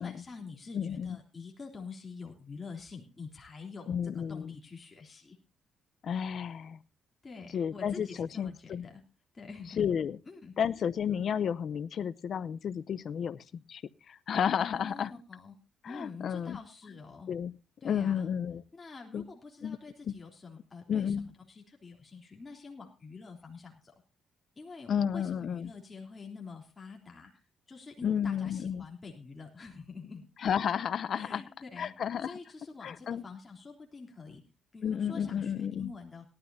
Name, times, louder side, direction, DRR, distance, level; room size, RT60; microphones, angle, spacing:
voice 1, 0.0-5.4 7.2-9.0 9.3-9.9 10.2-10.5 14.6-15.6 15.8-17.3 17.8-18.3 18.7-23.9 24.5-27.4 27.7-30.3 31.1-31.9 32.2-34.4 34.7-36.2, left 4 dB, 30° left, 0 dB, 3.5 m, -46 dB
voice 2, 0.7-1.2 3.9-4.6 6.0-6.8 7.5-8.9 9.8-10.2 10.6-13.8 14.1-15.1 15.8-16.6 17.3-17.5 17.8-18.6 19.1-19.2 19.6-19.8 20.0-20.1 20.9-21.3 24.9-25.7 28.0-28.9 30.4-31.4 31.8-32.4 32.8-33.2 34.8-35.9, left 8 dB, 60° left, 16 dB, 0.7 m, -32 dB
18.5 x 12.5 x 2.7 m, 0.31 s
cardioid pair, 90°, 0 cm